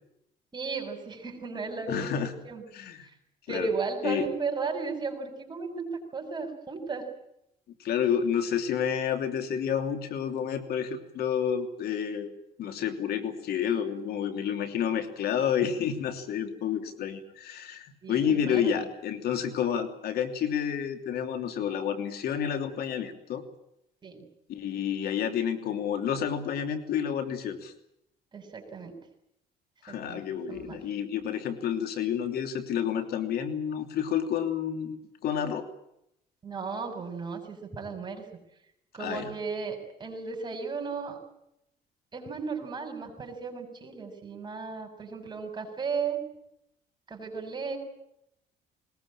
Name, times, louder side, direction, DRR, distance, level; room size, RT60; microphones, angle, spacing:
voice 1, 0.5-2.2 2.4-2.6 3.0-3.1 3.5-5.9 6.1-7.1 15.3-15.4 18.0-18.9 24.0-24.3 28.3-29.0 29.9-30.8 36.4-38.2 38.9-41.2 42.1-46.2 47.1-47.8, right 5 dB, 25° right, 3 dB, 7.0 m, -35 dB
voice 2, 1.9-2.3 2.7-3.1 3.5-3.7 4.0-4.3 7.8-12.3 12.6-23.4 24.5-27.7 29.8-35.0 35.2-35.7 39.0-39.3, left 8 dB, 70° left, 6 dB, 3.0 m, -30 dB
21.0 x 20.5 x 8.9 m, 0.80 s
cardioid pair, 110°, 17 cm